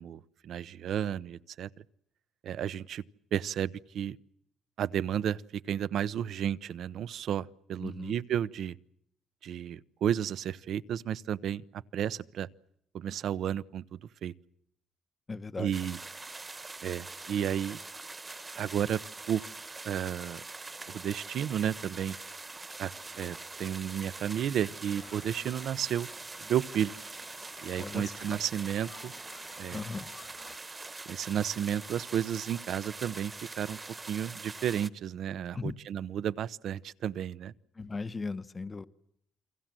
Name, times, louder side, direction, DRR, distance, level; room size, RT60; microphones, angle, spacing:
voice 1, 0.0-1.7 2.4-3.0 3.3-4.2 4.8-8.8 9.4-12.5 12.9-14.3 15.6-16.0 16.8-17.8 18.6-19.0 19.3-19.4 19.8-20.4 20.9-22.2 22.8-22.9 23.2-26.1 26.4-26.9 27.6-29.1 29.6-29.8 31.1-33.8 34.1-37.5, right 9 dB, 70° right, 1.0 m, -32 dB
voice 2, 7.8-8.1 15.3-15.7 27.8-28.4 29.7-30.1 35.5-35.7 37.8-38.9, left 4 dB, 30° left, 1.2 m, -37 dB
sound 1, 15.7-34.9, right 3 dB, 25° right, 1.4 m, -44 dB
sound 2, 24.9-30.6, left 8 dB, 65° left, 1.8 m, -56 dB
30.0 x 23.0 x 7.7 m
cardioid pair, 90°, 0 cm